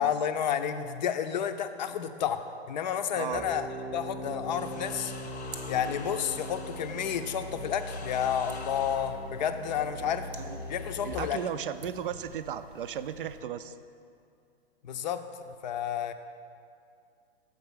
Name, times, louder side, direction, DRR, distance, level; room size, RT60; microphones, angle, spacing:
voice 1, 0.0-2.4 2.7-5.1 5.7-10.3 10.7-11.4 14.8-16.1, left 8 dB, 45° left, 9 dB, 0.5 m, -31 dB
voice 2, 3.1-3.4 10.0-10.6 11.0-13.8, right 9 dB, 55° right, 12 dB, 0.5 m, -36 dB
sound 1, 3.3-11.1, equal, 15° right, 0.7 m, -40 dB
sound 2, 4.5-11.6 12.6-13.2, left 4 dB, 85° left, 0.6 m, -48 dB
sound 3, 4.8-13.4, right 2 dB, 90° right, 1.0 m, -50 dB
7.0 x 5.0 x 6.3 m, 2.4 s
figure-of-eight pair, 125°, 31 cm